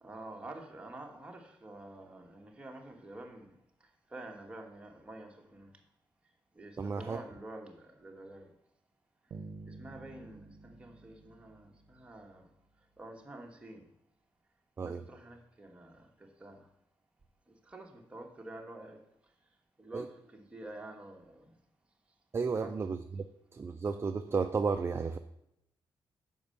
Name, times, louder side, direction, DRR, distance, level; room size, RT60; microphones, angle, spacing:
voice 1, 0.0-3.5 4.1-5.7 6.5-8.5 9.6-12.5 13.0-13.9 14.8-16.6 17.7-19.0 19.8-21.5 22.5-22.8, right 1 dB, 15° right, 1 dB, 1.3 m, -48 dB
voice 2, 6.8-7.2 14.8-15.0 19.9-20.1 22.3-23.0 23.5-25.2, right 5 dB, 30° right, 7 dB, 0.4 m, -32 dB
Bass guitar, 9.3-12.4, right 3 dB, 65° right, 0.8 m, -50 dB
7.1 x 5.4 x 6.4 m, 0.82 s
cardioid pair, 120°, 9 cm